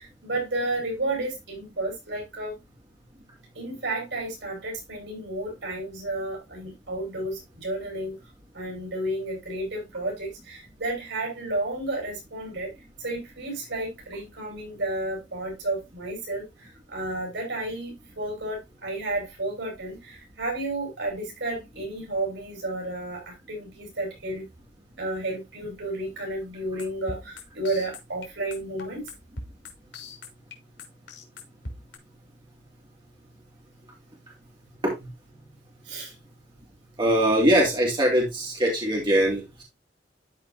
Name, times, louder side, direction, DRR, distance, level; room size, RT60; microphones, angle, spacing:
voice 1, 0.0-2.6 3.5-8.2 8.5-12.7 13.0-24.5 25.0-29.1 35.8-36.1, right 2 dB, 80° right, 6.2 m, -32 dB
sound 1, 26.8-32.0, left 2 dB, 70° left, 2.8 m, -39 dB
voice 2, 37.0-39.6, right 1 dB, 25° right, 3.1 m, -22 dB
13.0 x 5.0 x 2.7 m
head